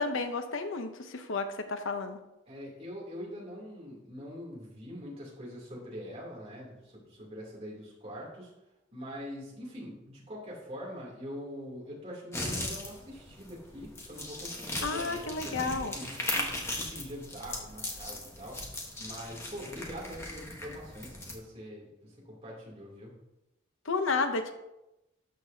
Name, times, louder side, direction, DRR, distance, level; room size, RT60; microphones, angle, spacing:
voice 1, 0.0-2.2 14.8-15.9 23.9-24.5, left 3 dB, 70° left, 7 dB, 0.8 m, -31 dB
voice 2, 2.5-8.5 8.9-18.6 19.0-23.1, equal, 30° right, -4 dB, 2.9 m, -44 dB
sound 1, 12.3-21.4, left 1 dB, 15° left, 1.1 m, -38 dB
12.0 x 6.7 x 2.7 m, 0.92 s
head